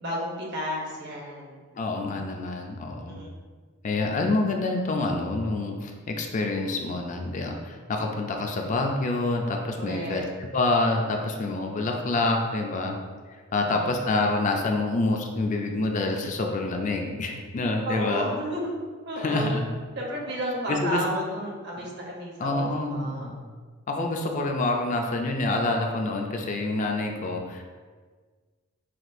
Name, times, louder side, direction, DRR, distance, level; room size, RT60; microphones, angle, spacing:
voice 1, 0.0-1.6 3.0-3.3 9.8-10.2 11.8-12.0 13.5-14.0 17.8-18.7 19.0-19.6 19.9-23.3, equal, 60° right, -2 dB, 0.9 m, -32 dB
voice 2, 1.7-3.2 3.8-10.2 10.5-13.0 13.5-18.2 19.2-19.7 20.7-21.0 22.4-23.4 23.9-27.6, left 2 dB, 40° left, 2 dB, 0.4 m, -27 dB
5.9 x 2.3 x 2.6 m, 1.5 s
head